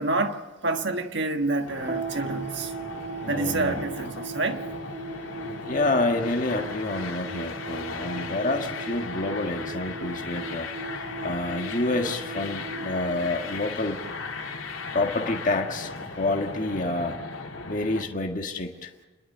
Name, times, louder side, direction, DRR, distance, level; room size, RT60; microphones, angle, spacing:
voice 1, 0.0-2.7 3.3-4.7, right 2 dB, 60° right, 1.5 m, -28 dB
sound 1, 1.6-18.0, left 4 dB, 85° left, 2.8 m, -37 dB
sound 2, 1.9-14.4, right 3 dB, 35° right, 0.7 m, -39 dB
voice 2, 3.2-3.8 5.7-14.0 14.9-17.2 17.6-18.9, left 2 dB, 40° left, 1.6 m, -28 dB
29.0 x 12.0 x 8.6 m
head